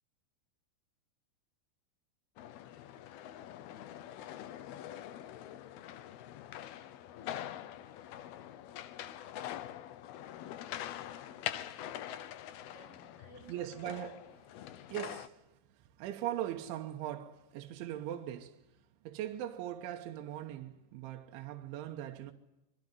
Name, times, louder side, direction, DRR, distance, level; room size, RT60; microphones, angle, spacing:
sound 1, 2.4-15.3, left 12 dB, 70° left, 2.7 m, -44 dB
voice 1, 11.2-11.5 12.0-14.0, left 1 dB, 5° left, 7.5 m, -59 dB
voice 2, 13.5-14.3 14.9-15.4 16.0-18.6 19.1-22.3, right 12 dB, 85° right, 3.6 m, -40 dB
26.0 x 23.0 x 9.6 m
omnidirectional pair, 5.4 m